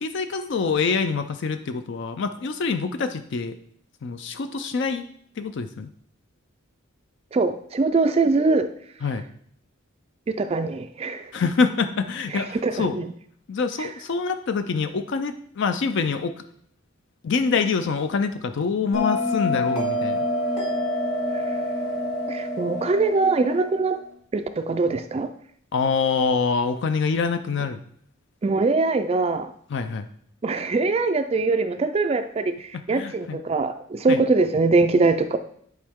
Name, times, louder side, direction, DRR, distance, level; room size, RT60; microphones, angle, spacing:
voice 1, 0.0-3.5 4.0-5.1 5.4-5.9 9.0-9.2 11.3-13.0 13.5-16.3 17.2-20.2 25.7-27.8 29.7-30.1 32.9-33.4 34.1-34.2, left 5 dB, 55° left, 9 dB, 0.4 m, -25 dB
voice 2, 7.3-8.7 10.3-11.3 12.3-13.1 13.8-13.9 22.3-24.0 24.3-25.3 28.4-29.5 30.4-35.4, right 3 dB, 30° right, 8 dB, 0.3 m, -22 dB
Bell, 18.9-24.0, left 1 dB, 85° left, 2.1 m, -27 dB
10.5 x 4.4 x 3.6 m, 0.65 s
head